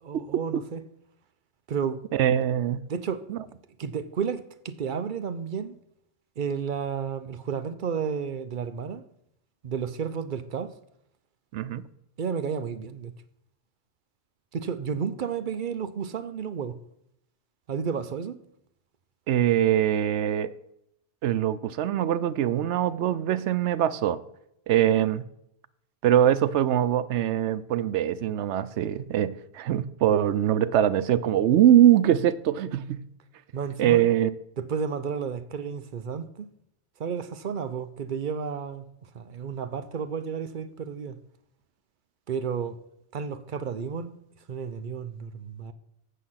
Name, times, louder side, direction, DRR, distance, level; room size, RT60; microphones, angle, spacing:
voice 1, 0.0-0.8 1.7-2.0 2.9-3.2 3.8-5.7 6.4-9.0 9.6-10.7 12.2-13.1 14.5-16.8 17.7-18.4 33.5-34.0 34.6-36.5 37.0-38.8 39.1-41.2 42.3-42.8 43.1-44.2 44.5-45.7, right 6 dB, 55° right, 0.7 m, -32 dB
voice 2, 2.1-2.8 3.3-3.4 11.5-11.8 19.3-20.5 21.2-24.2 24.7-25.3 26.0-33.0 33.8-34.3, right 11 dB, 90° right, 0.9 m, -23 dB
8.4 x 7.7 x 5.6 m
omnidirectional pair, 1.1 m